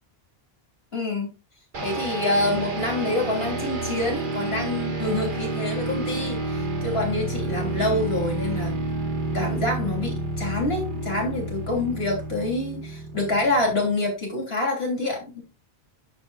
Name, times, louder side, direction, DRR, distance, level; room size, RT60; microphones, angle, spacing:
voice 1, 0.9-1.3 1.8-8.8 9.3-15.4, left 2 dB, 75° left, 0 dB, 3.7 m, -26 dB
sound 1, 1.7-14.0, right 2 dB, 55° right, 1.7 m, -30 dB
10.5 x 7.9 x 2.4 m, 0.27 s
omnidirectional pair, 1.0 m